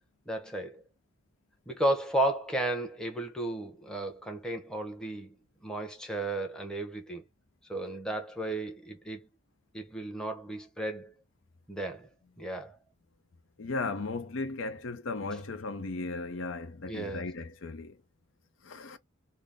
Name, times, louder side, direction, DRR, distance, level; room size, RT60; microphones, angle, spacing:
voice 1, 0.3-0.8 1.7-5.4 5.6-7.2 7.7-9.3 9.7-11.1 11.7-12.1 12.4-12.8 16.9-17.3, right 1 dB, 5° left, 0.8 m, -33 dB
voice 2, 13.6-18.0 18.6-19.0, left 3 dB, 90° left, 0.6 m, -36 dB
4.0 x 2.0 x 3.4 m
head